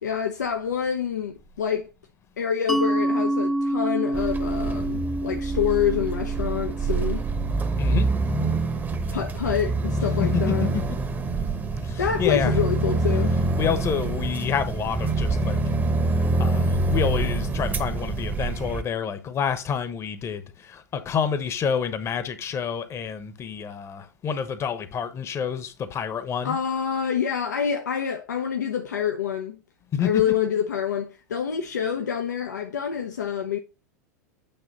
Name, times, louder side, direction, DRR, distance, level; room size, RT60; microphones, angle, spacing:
voice 1, 0.0-1.9 2.4-7.3 9.1-10.7 12.0-13.4 26.4-29.6 30.0-33.6, left 8 dB, 80° left, 0.8 m, -27 dB
Mallet percussion, 2.7-8.1, right 1 dB, ahead, 0.5 m, -28 dB
sound 1, 4.1-18.8, right 3 dB, 20° right, 1.0 m, -25 dB
voice 2, 10.2-10.8 11.8-12.5 13.6-15.6 16.1-26.6 29.9-30.2, left 7 dB, 30° left, 1.0 m, -28 dB
9.0 x 3.1 x 5.3 m
hypercardioid pair, 90°, 9 cm